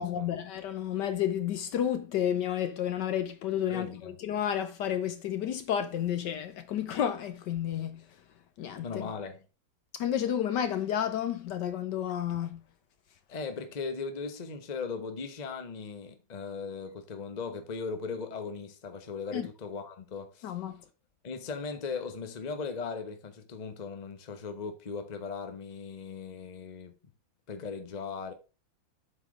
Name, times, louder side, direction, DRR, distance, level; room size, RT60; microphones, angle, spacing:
voice 1, 0.0-8.0 8.6-9.0 9.9-12.6 19.3-19.5 20.4-20.7, left 10 dB, 70° left, 1.2 m, -31 dB
voice 2, 3.7-4.1 8.8-9.4 13.3-20.5 21.2-26.9 27.5-28.3, left 5 dB, 30° left, 0.8 m, -38 dB
8.0 x 4.3 x 4.7 m
omnidirectional pair, 2.1 m